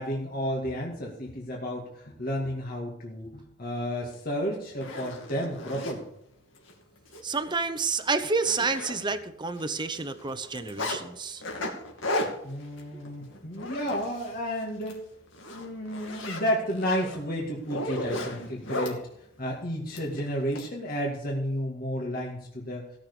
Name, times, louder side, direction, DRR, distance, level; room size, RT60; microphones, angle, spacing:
voice 1, 0.0-6.1 12.4-15.0 15.5-19.0 19.4-22.9, equal, 50° left, -2 dB, 2.3 m, -32 dB
Zipper (clothing), 4.1-4.2 4.7-6.0 6.6-6.7 7.1-7.2 7.5-7.7 8.0-9.3 9.6-11.0 11.4-14.4 14.7-15.0 15.3-19.0 19.9-20.7, left 1 dB, 85° left, 2.5 m, -35 dB
voice 2, 7.2-11.4 12.9-13.0, right 4 dB, 25° right, 9 dB, 0.8 m, -29 dB
16.0 x 6.6 x 6.9 m, 0.74 s
head